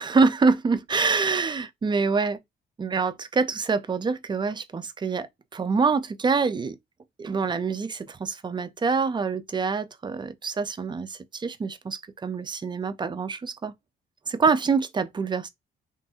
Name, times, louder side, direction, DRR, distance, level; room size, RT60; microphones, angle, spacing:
voice 1, 0.0-2.4 2.8-5.3 5.5-6.8 7.2-13.7 14.3-15.5, right 4 dB, 25° right, 0.4 m, -25 dB
3.1 x 2.5 x 2.7 m
cardioid pair, 90°, 20 cm